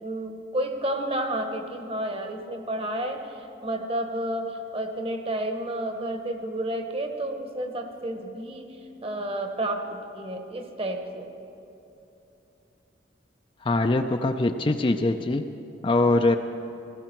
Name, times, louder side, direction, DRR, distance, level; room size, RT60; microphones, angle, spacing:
voice 1, 0.0-11.3, right 1 dB, 30° right, 5 dB, 1.1 m, -31 dB
voice 2, 13.6-15.5 15.8-16.4, left 2 dB, 25° left, 6 dB, 0.4 m, -22 dB
17.5 x 15.5 x 4.5 m, 2.9 s
head